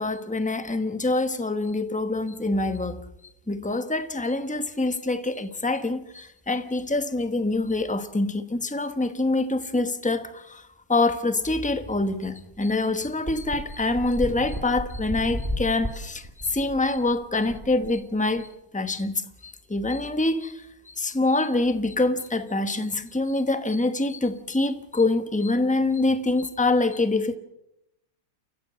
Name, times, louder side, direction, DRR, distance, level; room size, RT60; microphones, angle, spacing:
voice 1, 0.0-3.0 3.5-27.4, left 2 dB, 10° left, 0.5 m, -25 dB
sound 1, 12.2-12.3 12.6-12.7 13.3-18.4, equal, 10° right, 2.1 m, -34 dB
29.0 x 15.0 x 7.5 m
omnidirectional pair, 2.2 m